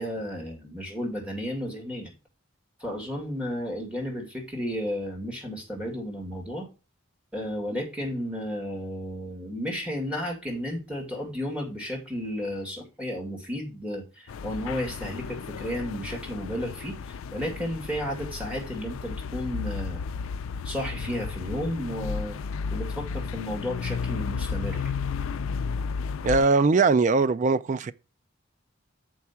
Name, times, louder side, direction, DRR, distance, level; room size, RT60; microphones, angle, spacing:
voice 1, 0.0-2.1 2.8-6.7 7.3-20.0 20.6-22.4 22.7-24.9, equal, 5° right, 2.2 m, -33 dB
sound 1, 14.3-26.5, left 5 dB, 90° left, 0.4 m, -33 dB
voice 2, 26.2-27.9, right 4 dB, 35° right, 0.3 m, -21 dB
7.1 x 4.7 x 5.6 m
head